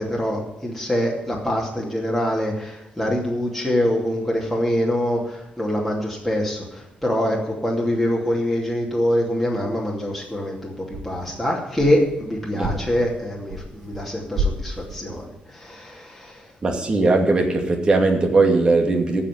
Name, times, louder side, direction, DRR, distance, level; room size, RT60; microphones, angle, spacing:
voice 1, 0.0-6.6 7.0-15.3 15.5-16.4, left 1 dB, ahead, -2 dB, 2.7 m, -24 dB
sound 1, 10.2-10.5 10.9-12.3 12.6-14.0 14.3-15.3, right 2 dB, 90° right, 2.1 m, -30 dB
voice 2, 16.6-19.2, right 3 dB, 30° right, 3 dB, 2.4 m, -19 dB
14.5 x 5.7 x 9.4 m, 0.93 s
cardioid pair, 120°, 3 cm